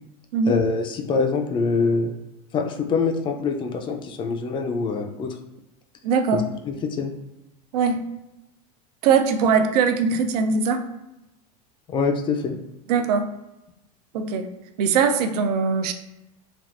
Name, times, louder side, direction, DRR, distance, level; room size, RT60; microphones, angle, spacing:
voice 1, 0.5-2.1 2.5-5.4 6.3-7.1 11.9-12.6, left 4 dB, 25° left, 5 dB, 0.4 m, -24 dB
voice 2, 6.0-6.4 7.7-8.0 9.0-10.8 12.9-13.3 14.1-14.5 14.8-15.9, right 5 dB, 75° right, 7 dB, 0.4 m, -21 dB
3.5 x 2.4 x 2.5 m, 0.95 s
supercardioid pair, 115°, 20 cm